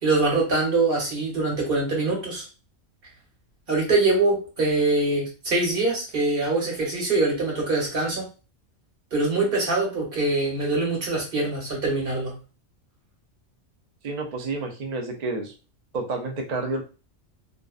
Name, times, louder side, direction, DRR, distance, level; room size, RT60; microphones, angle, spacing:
voice 1, 0.0-2.4 3.7-8.3 9.1-12.3, right 2 dB, 50° right, -2 dB, 1.1 m, -23 dB
voice 2, 14.0-15.5 15.9-16.8, right 3 dB, 80° right, 2 dB, 0.3 m, -29 dB
2.5 x 2.1 x 2.3 m, 0.33 s
omnidirectional pair, 1.4 m